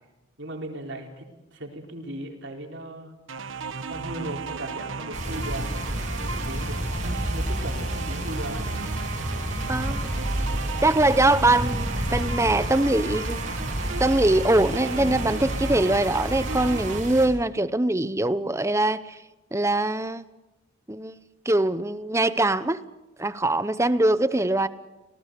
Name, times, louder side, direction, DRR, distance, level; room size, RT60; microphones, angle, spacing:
voice 1, 0.4-1.3 1.5-3.2 3.9-8.7, right 1 dB, 60° right, 4.0 m, -37 dB
sound 1, 3.3-17.0, right 4 dB, 75° right, 1.2 m, -35 dB
sound 2, 5.1-17.3, right 1 dB, 35° right, 6.1 m, -30 dB
voice 2, 9.7-10.1 10.8-13.4 14.0-19.2 19.5-20.2 20.9-21.2 21.4-22.8 23.2-24.7, right 2 dB, 15° right, 0.7 m, -22 dB
26.5 x 19.0 x 6.9 m
head